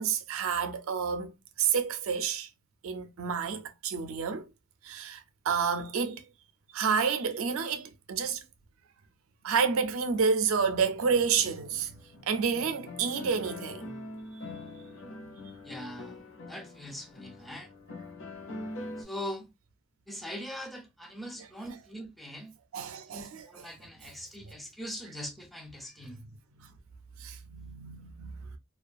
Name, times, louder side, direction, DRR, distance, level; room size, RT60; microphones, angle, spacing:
voice 1, 0.0-1.3 1.6-2.5 2.8-4.5 4.8-6.2 6.7-8.4 9.4-12.0 12.2-13.9 21.4-21.8 22.7-23.7 24.0-24.1 25.0-25.1 26.6-26.7 27.2-28.6, right 6 dB, 70° right, 0.4 m, -30 dB
sound 1, 11.0-19.0, left 2 dB, 65° left, 0.7 m, -44 dB
voice 2, 15.6-16.2 16.5-17.7 19.0-19.5 20.1-22.5 23.1-26.2, equal, ahead, 0.4 m, -41 dB
2.3 x 2.2 x 2.5 m
head